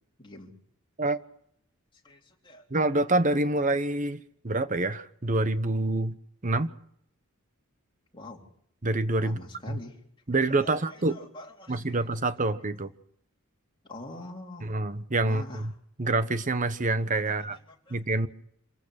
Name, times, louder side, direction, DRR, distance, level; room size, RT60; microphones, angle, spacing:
voice 1, 0.2-0.5 2.0-2.7 8.1-8.5 9.2-10.0 10.5-12.1 13.8-14.7 15.2-15.7 17.3-18.0, left 1 dB, 20° left, 3.6 m, -45 dB
voice 2, 2.7-6.2 6.4-6.7 8.8-9.4 9.7-9.8 10.3-11.2 11.7-12.9 14.6-15.7 16.0-17.6 17.9-18.3, right 2 dB, 35° right, 1.0 m, -26 dB
27.0 x 15.5 x 6.5 m
head